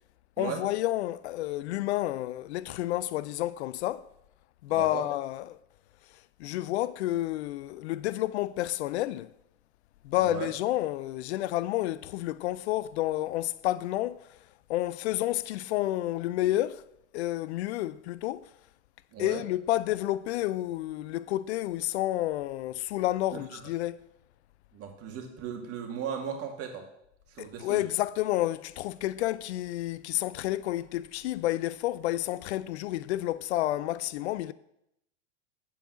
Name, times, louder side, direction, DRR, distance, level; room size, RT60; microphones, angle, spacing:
voice 1, 0.4-4.1 4.6-5.6 6.4-9.3 10.0-14.2 14.7-16.8 17.1-18.5 19.2-24.0 27.4-34.5, left 15 dB, 65° left, 0.5 m, -30 dB
voice 2, 4.7-5.1 10.2-10.5 19.1-19.4 23.5-23.6 24.7-26.8 27.3-27.8, right 8 dB, 40° right, 2.3 m, -37 dB
7.5 x 5.5 x 7.3 m
hypercardioid pair, 100°, 35 cm